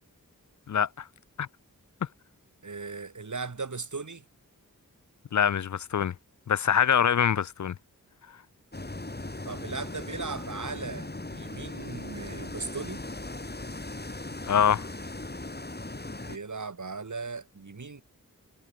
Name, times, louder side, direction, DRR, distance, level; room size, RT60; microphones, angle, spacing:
voice 1, 0.7-1.0 1.4-1.5 5.3-6.1 6.5-7.7 14.5-14.8, left 8 dB, 60° left, 0.5 m, -24 dB
voice 2, 2.6-4.2 9.5-13.0 16.2-18.0, right 4 dB, 60° right, 2.5 m, -37 dB
sound 1, 8.7-16.4, left 2 dB, 30° left, 3.8 m, -38 dB
wide cardioid pair, 50°, 34 cm